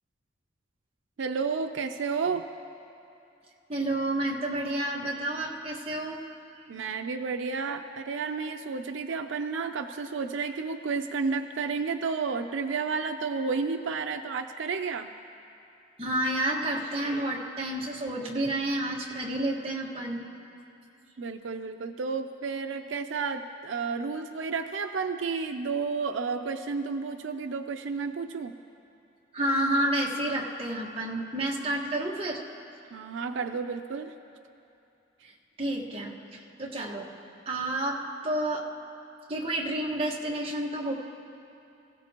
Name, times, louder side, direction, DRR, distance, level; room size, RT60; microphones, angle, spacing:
voice 1, 1.2-2.5 6.7-15.1 21.2-28.5 32.9-34.1, right 5 dB, 80° right, 7 dB, 0.5 m, -31 dB
voice 2, 3.7-6.2 16.0-20.3 29.3-32.4 35.2-35.3 35.6-37.1 37.4-38.7 39.3-40.9, right 1 dB, 30° right, -3 dB, 1.5 m, -30 dB
25.0 x 16.0 x 2.9 m, 2.8 s
head